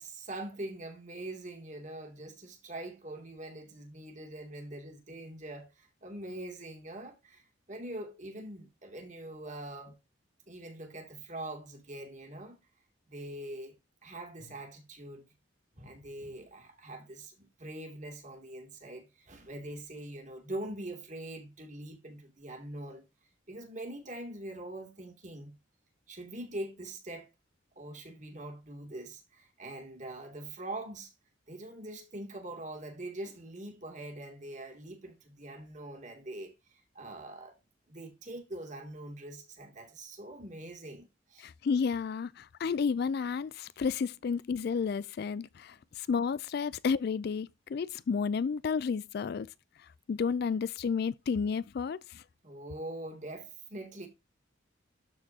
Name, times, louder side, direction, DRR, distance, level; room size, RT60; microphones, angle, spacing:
voice 1, 0.0-10.0 10.5-12.6 13.1-13.8 14.0-15.3 15.7-23.0 23.5-25.6 26.1-27.3 27.8-31.1 31.5-37.6 37.9-41.5 52.4-54.1, right 1 dB, 40° right, 2.5 m, -43 dB
voice 2, 41.4-49.5 50.1-52.2, left 5 dB, 50° left, 0.3 m, -31 dB
13.0 x 4.4 x 2.7 m
head